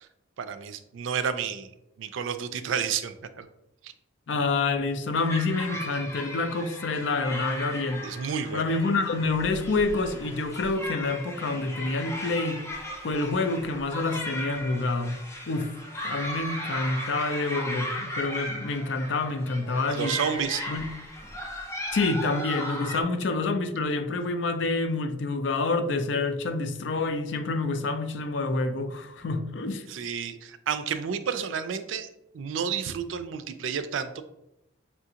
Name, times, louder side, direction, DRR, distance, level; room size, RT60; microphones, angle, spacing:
voice 1, 0.4-1.7 2.0-3.5 3.8-3.9 8.0-8.6 19.9-20.6 29.9-32.1 32.3-34.2, right 7 dB, 85° right, 0.4 m, -30 dB
voice 2, 4.3-8.0 8.5-12.6 13.0-15.2 15.5-15.7 16.0-20.2 20.7-20.9 21.9-29.9, left 3 dB, 70° left, 0.4 m, -27 dB
sound 1, 5.1-23.0, left 1 dB, 15° left, 0.5 m, -36 dB
5.6 x 2.5 x 2.8 m
head